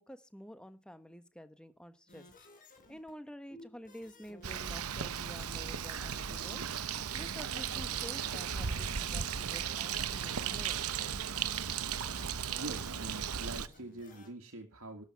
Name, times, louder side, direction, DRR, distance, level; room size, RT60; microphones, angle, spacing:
voice 1, 0.0-2.3 2.9-10.8, equal, 5° left, 11 dB, 1.2 m, -50 dB
sound 1, 2.1-3.1 3.6-4.9 5.6-6.7 6.9-11.5 11.8-11.9 12.1-14.3, left 2 dB, 40° left, 4.6 m, -57 dB
sound 2, 3.5-6.9, right 1 dB, 25° left, 3.6 m, -60 dB
Bird, 4.4-13.7, right 8 dB, 85° right, 0.9 m, -36 dB
voice 2, 12.6-15.0, right 2 dB, 65° right, 3 dB, 1.8 m, -44 dB
12.5 x 8.3 x 5.8 m, 0.32 s
head